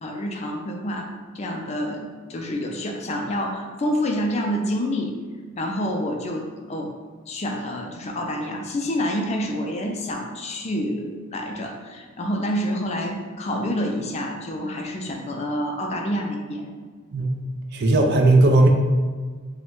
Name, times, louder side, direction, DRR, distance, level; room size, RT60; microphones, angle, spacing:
voice 1, 0.0-5.2 5.6-6.9 7.3-16.7, equal, 35° left, 2 dB, 0.4 m, -28 dB
voice 2, 17.7-18.7, right 2 dB, 55° right, 2 dB, 0.5 m, -16 dB
5.0 x 2.2 x 3.7 m, 1.5 s
head